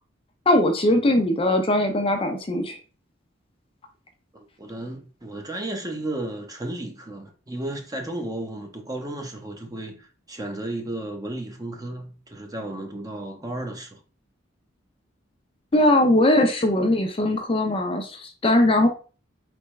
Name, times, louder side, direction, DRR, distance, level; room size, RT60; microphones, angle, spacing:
voice 1, 0.5-2.8 15.7-18.9, left 1 dB, 30° left, 0.6 m, -20 dB
voice 2, 4.6-14.0, right 1 dB, 20° right, 0.9 m, -33 dB
4.2 x 3.4 x 3.1 m
head